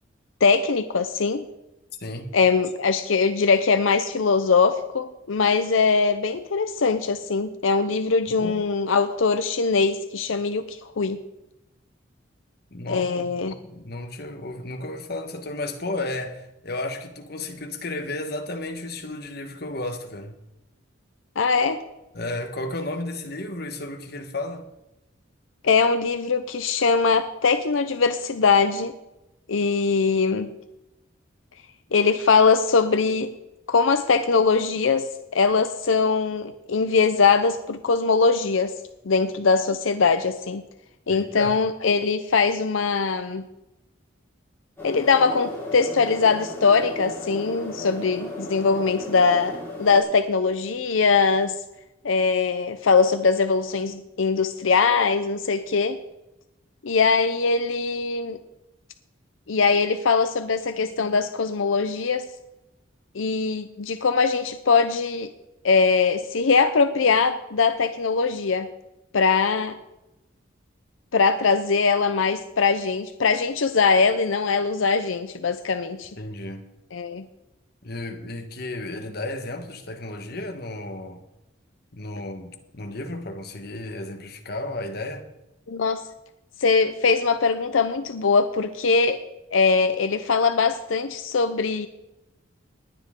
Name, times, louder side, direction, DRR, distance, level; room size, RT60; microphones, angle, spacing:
voice 1, 0.4-1.4 2.3-11.2 12.9-13.6 21.4-21.8 25.6-28.9 29.5-30.5 31.9-33.3 33.7-38.7 39.0-40.6 41.1-43.5 44.8-51.6 52.0-56.0 56.8-58.4 59.5-62.3 63.1-65.3 65.6-68.7 69.1-69.7 71.1-76.1 76.9-77.3 85.7-86.1 86.6-89.2 89.5-91.9, left 4 dB, 85° left, 0.6 m, -21 dB
voice 2, 2.0-2.3 8.3-8.6 12.7-20.4 22.1-24.7 41.1-41.5 76.2-76.6 77.8-81.2 81.9-85.3, left 2 dB, 50° left, 1.3 m, -33 dB
sound 1, 44.8-50.0, left 2 dB, 10° left, 4.4 m, -35 dB
19.5 x 9.6 x 3.7 m
head